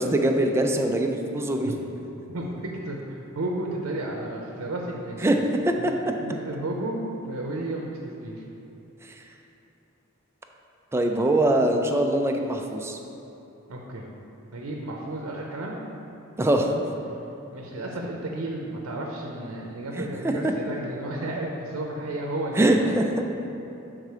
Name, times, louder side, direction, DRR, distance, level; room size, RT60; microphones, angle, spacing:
voice 1, 0.0-1.7 5.2-5.4 5.6-6.1 10.9-13.0 16.4-16.7 20.0-20.5 22.6-23.0, right 1 dB, 10° right, 3 dB, 0.3 m, -23 dB
voice 2, 2.3-5.3 5.8-8.4 13.7-14.0 14.5-15.8 17.5-22.8, right 1 dB, 85° right, 0 dB, 0.6 m, -33 dB
6.6 x 3.7 x 4.8 m, 2.9 s
head